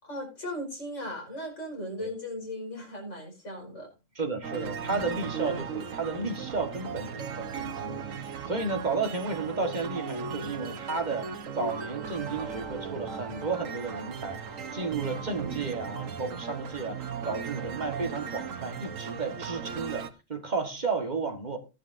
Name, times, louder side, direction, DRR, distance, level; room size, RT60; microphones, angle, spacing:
voice 1, 0.0-3.9, left 1 dB, 70° left, 5.6 m, -37 dB
voice 2, 4.1-14.4 14.7-21.6, right 4 dB, 35° right, 1.6 m, -33 dB
sound 1, 4.4-20.1, right 6 dB, 90° right, 1.4 m, -37 dB
15.0 x 11.0 x 2.6 m
omnidirectional pair, 1.3 m